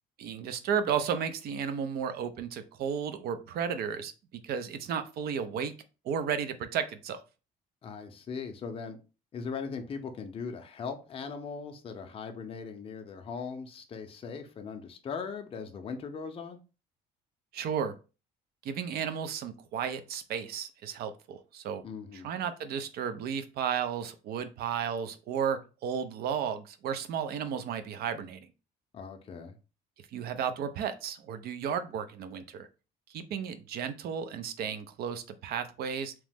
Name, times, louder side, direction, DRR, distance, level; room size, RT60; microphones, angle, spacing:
voice 1, 0.2-4.1 4.4-5.7 6.0-7.2 17.5-17.9 18.6-21.8 22.1-28.5 30.1-32.7 33.1-36.1, right 7 dB, 65° right, 0.5 m, -33 dB
voice 2, 7.8-9.0 9.3-16.6 21.8-22.3 28.9-29.5, left 5 dB, 35° left, 0.5 m, -39 dB
3.0 x 2.0 x 3.3 m
cardioid pair, 110°, 17 cm